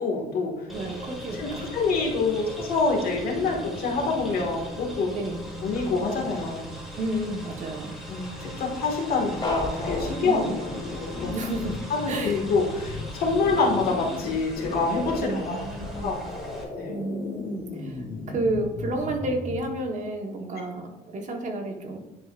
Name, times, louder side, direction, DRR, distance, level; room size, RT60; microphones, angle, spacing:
voice 1, 0.0-0.7 1.3-5.1 5.6-6.7 8.1-10.7 11.0-11.3 11.9-15.6 16.0-16.2 16.8-16.9, left 4 dB, 60° left, 0 dB, 1.7 m, -26 dB
sound 1, 0.7-16.6, equal, ahead, 2.0 m, -39 dB
voice 2, 0.7-1.6 5.1-5.4 7.0-8.0 10.2-10.6 11.3-11.8 12.1-12.4 15.2-16.3 16.9-22.0, right 1 dB, 45° right, 3 dB, 1.2 m, -31 dB
sound 2, 9.4-19.6, left 2 dB, 25° left, 2.0 m, -35 dB
10.0 x 4.6 x 2.5 m, 0.99 s
cardioid pair, 110°, 17 cm